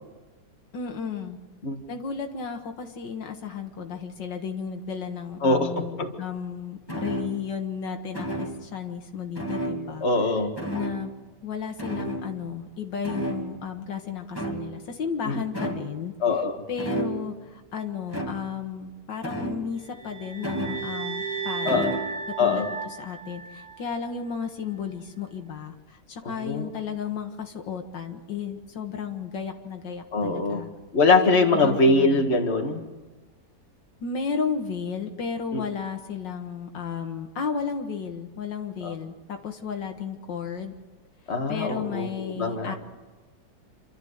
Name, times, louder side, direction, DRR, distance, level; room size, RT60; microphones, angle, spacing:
voice 1, 0.7-1.4 1.9-10.1 10.7-11.1 11.4-16.1 16.7-21.9 22.4-22.6 23.0-30.7 31.5-32.3 34.0-40.7 41.5-42.8, left 6 dB, 85° left, 4 dB, 2.2 m, -33 dB
voice 2, 5.4-6.1 10.0-10.5 15.3-15.4 16.2-16.6 21.6-22.0 22.4-22.7 26.4-26.7 30.1-30.6 30.9-32.9 35.5-35.6 38.8-38.9 41.3-42.1 42.4-42.8, left 3 dB, 40° left, 3 dB, 2.0 m, -22 dB
sound 1, 6.9-7.6 8.1-8.8 9.3-10.3 10.6-11.2 11.8-12.7 13.0-13.8 14.3-15.0 15.5-16.0 16.8-17.4 18.1-18.6 19.2-19.9 20.4-21.2 21.7-22.1, right 1 dB, 15° left, 2.3 m, -32 dB
sound 2, 19.9-24.2, right 5 dB, 80° right, 3.4 m, -34 dB
27.5 x 13.0 x 8.1 m, 1.3 s
omnidirectional pair, 1.9 m